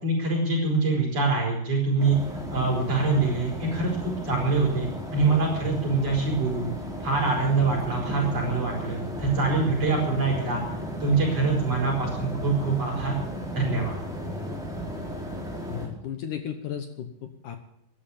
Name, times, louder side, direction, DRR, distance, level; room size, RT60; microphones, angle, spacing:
voice 1, 0.0-6.7 7.0-10.6 11.0-13.1 13.5-14.0, right 3 dB, 40° right, -2 dB, 5.8 m, -25 dB
sound 1, 2.0-15.9, equal, ahead, 3.3 m, -35 dB
voice 2, 15.7-17.6, left 9 dB, 70° left, 7 dB, 2.1 m, -35 dB
14.0 x 11.5 x 7.3 m, 0.77 s
omnidirectional pair, 4.7 m